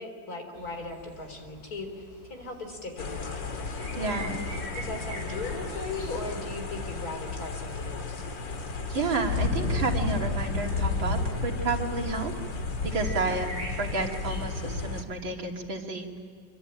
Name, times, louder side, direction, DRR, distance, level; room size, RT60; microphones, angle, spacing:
voice 1, 0.0-3.4 3.9-4.2 4.7-8.2 13.1-13.3, left 2 dB, 50° left, 4 dB, 4.3 m, -38 dB
sound 1, 0.5-14.4, right 1 dB, 35° left, 6.3 m, -46 dB
sound 2, 3.0-15.0, left 3 dB, 70° left, 2.7 m, -32 dB
voice 2, 4.0-4.3 8.9-12.3 12.8-13.5 13.8-16.1, right 3 dB, 85° right, 1 dB, 3.5 m, -30 dB
26.0 x 25.0 x 8.9 m, 2.2 s
omnidirectional pair, 2.1 m